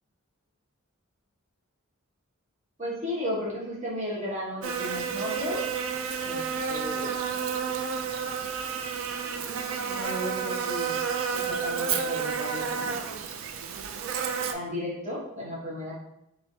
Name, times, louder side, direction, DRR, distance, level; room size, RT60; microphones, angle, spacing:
voice 1, 2.8-5.7 6.2-6.4 6.7-7.2 9.9-13.0 14.5-15.9, left 1 dB, 35° right, -6 dB, 1.1 m, -34 dB
Buzz, 4.6-14.5, right 6 dB, 65° right, 0.3 m, -30 dB
3.2 x 3.2 x 2.7 m, 0.81 s
head